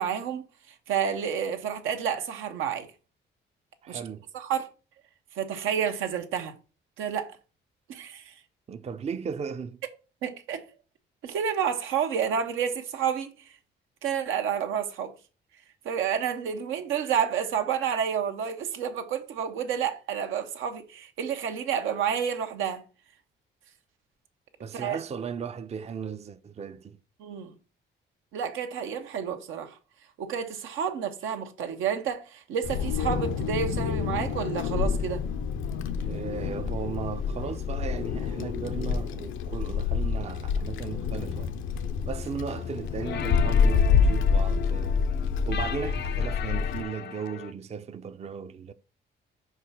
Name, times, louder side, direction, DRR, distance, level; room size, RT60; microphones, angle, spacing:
voice 1, 0.0-2.9 3.9-4.0 4.3-4.7 5.3-6.5 7.0-7.4 7.9-8.4 10.2-10.6 11.2-13.5 14.0-15.1 15.8-22.8 24.7-25.0 27.2-27.5 28.3-29.8 30.2-35.2, right 8 dB, 90° right, 1.1 m, -30 dB
voice 2, 3.8-4.2 8.7-9.8 24.6-27.0 36.0-41.5 42.1-45.0 45.5-48.7, right 6 dB, 35° right, 0.5 m, -36 dB
Wind, 32.6-46.8, left 6 dB, 85° left, 0.8 m, -27 dB
sound 1, 42.5-47.5, left 10 dB, 60° left, 0.5 m, -39 dB
4.7 x 4.7 x 5.8 m
cardioid pair, 90°, 20 cm